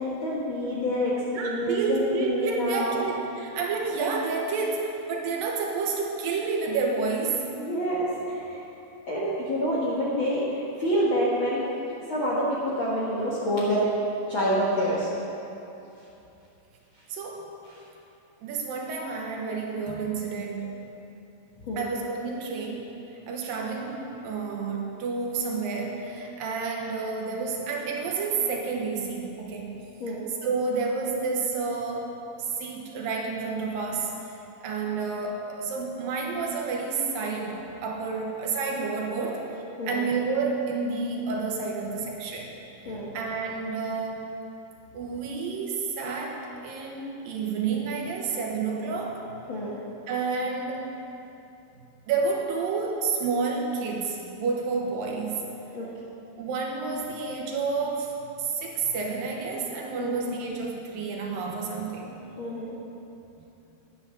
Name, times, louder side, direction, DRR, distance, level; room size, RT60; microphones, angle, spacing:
voice 1, 0.0-3.0 7.5-8.6 9.1-11.6 12.1-13.8 14.3-15.1 21.7-21.9 30.0-30.3 39.3-39.4 39.8-40.0 42.8-43.1 49.5-49.8 55.7-55.9 60.0-60.2 62.4-62.8, equal, 50° left, -7 dB, 1.5 m, -27 dB
voice 2, 1.3-7.4 14.3-14.4 17.1-17.5 18.4-20.9 21.8-23.0 23.3-29.8 30.1-30.2 30.4-42.5 42.8-44.3 44.9-49.2 50.1-50.9 52.1-55.5 56.4-62.2 62.5-62.6, right 4 dB, 70° right, 0 dB, 2.7 m, -30 dB
10.5 x 9.7 x 6.9 m, 2.9 s
omnidirectional pair, 4.4 m